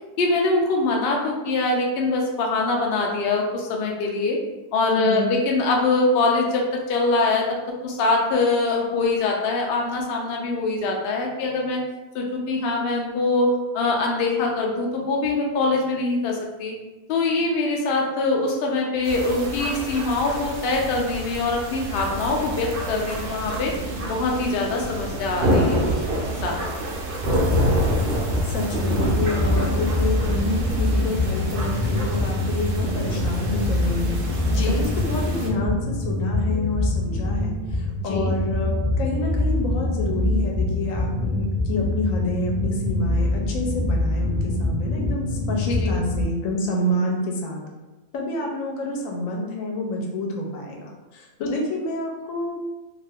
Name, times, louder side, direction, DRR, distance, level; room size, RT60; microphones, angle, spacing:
voice 1, 0.2-4.4 4.7-11.8 12.1-16.7 17.1-23.8 24.1-26.1 26.4-26.6 34.5-34.8 38.1-38.3 45.7-45.9, left 3 dB, 90° left, 0 dB, 0.5 m, -23 dB
voice 2, 4.8-5.3 28.4-34.2 34.6-47.6 48.1-52.6, left 1 dB, 70° left, 0 dB, 0.9 m, -28 dB
sound 1, 19.0-35.5, right 1 dB, 80° right, 0.5 m, -27 dB
sound 2, 27.5-46.2, left 2 dB, 15° left, 0.4 m, -25 dB
2.5 x 2.4 x 3.4 m, 1.1 s
omnidirectional pair, 1.6 m